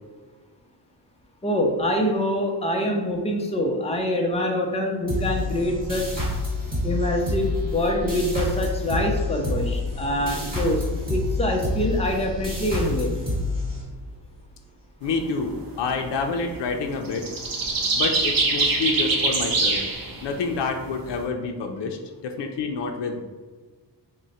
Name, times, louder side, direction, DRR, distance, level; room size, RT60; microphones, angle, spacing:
voice 1, 1.4-6.0 6.8-10.8 11.1-13.1, left 1 dB, 15° left, 1 dB, 0.5 m, -25 dB
sound 1, 5.1-14.3, left 2 dB, 20° right, 1.3 m, -28 dB
voice 2, 15.0-17.3 17.9-19.8 20.2-22.0 22.2-23.2, left 4 dB, 75° left, 4 dB, 0.5 m, -28 dB
sound 2, 15.1-15.4 15.9-16.0 16.2-16.7 17.0-21.2, right 3 dB, 55° right, 0.6 m, -24 dB
3.7 x 2.1 x 4.1 m, 1.4 s
wide cardioid pair, 125°, 43 cm